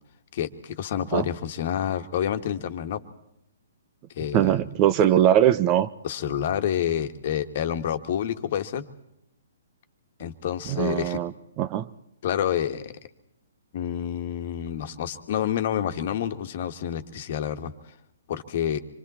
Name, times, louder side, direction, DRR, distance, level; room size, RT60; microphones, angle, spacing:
voice 1, 0.3-3.0 4.1-4.6 6.0-8.8 10.2-11.2 12.2-12.9 13.7-17.7 18.3-18.8, left 9 dB, 45° left, 8 dB, 1.6 m, -28 dB
voice 2, 4.3-5.9 10.7-11.3 11.6-11.9, right 11 dB, 30° right, 14 dB, 0.8 m, -21 dB
26.5 x 24.5 x 4.3 m, 0.78 s
figure-of-eight pair, 125°, 0 cm